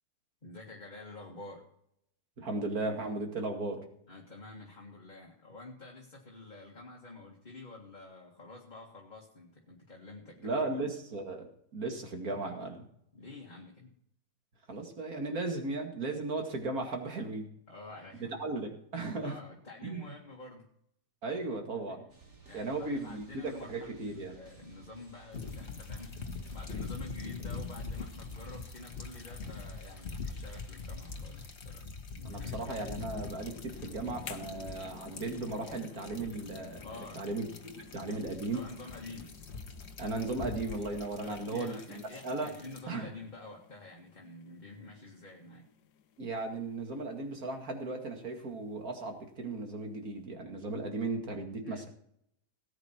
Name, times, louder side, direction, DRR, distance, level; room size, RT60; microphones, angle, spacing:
voice 1, 0.4-1.6 4.1-10.7 13.1-13.9 17.7-18.4 19.2-20.7 22.5-31.9 32.1-32.6 36.8-37.2 38.5-39.3 41.2-45.7 51.6-51.9, left 2 dB, 25° left, -2 dB, 2.0 m, -48 dB
voice 2, 2.4-3.9 10.4-12.9 14.7-17.5 18.2-19.4 19.8-20.1 21.2-22.0 22.5-24.4 32.2-36.8 37.2-37.5 37.8-38.6 40.0-42.5 42.9-43.1 46.2-51.9, right 3 dB, 60° right, 3 dB, 2.6 m, -36 dB
sound 1, 22.1-31.5, right 4 dB, 45° right, 2.6 m, -57 dB
sound 2, 25.3-42.8, left 4 dB, 45° left, 1.5 m, -43 dB
sound 3, 33.1-48.0 48.5-48.6, left 9 dB, 80° left, 1.4 m, -52 dB
18.0 x 9.4 x 4.5 m, 0.71 s
omnidirectional pair, 1.8 m